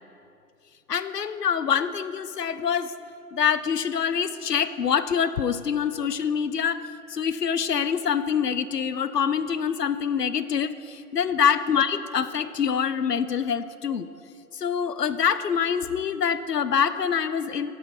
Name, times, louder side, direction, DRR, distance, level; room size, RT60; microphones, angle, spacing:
voice 1, 0.9-2.9 3.3-14.1 14.5-17.7, left 7 dB, 80° left, 14 dB, 0.6 m, -25 dB
11.5 x 5.5 x 4.8 m, 2.6 s
figure-of-eight pair, 160°, 48 cm